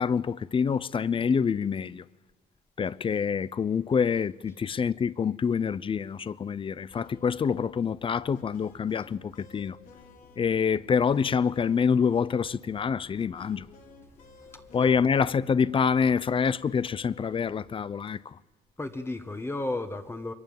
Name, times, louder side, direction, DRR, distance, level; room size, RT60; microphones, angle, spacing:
voice 1, 0.0-2.0 2.8-9.8 10.4-13.6 14.7-18.4, left 6 dB, 30° left, 0.7 m, -26 dB
sound 1, 6.9-17.7, left 4 dB, 55° left, 3.3 m, -53 dB
voice 2, 14.5-14.9 18.8-20.3, left 2 dB, 15° left, 1.4 m, -34 dB
28.5 x 22.5 x 7.2 m
cardioid pair, 110°, 17 cm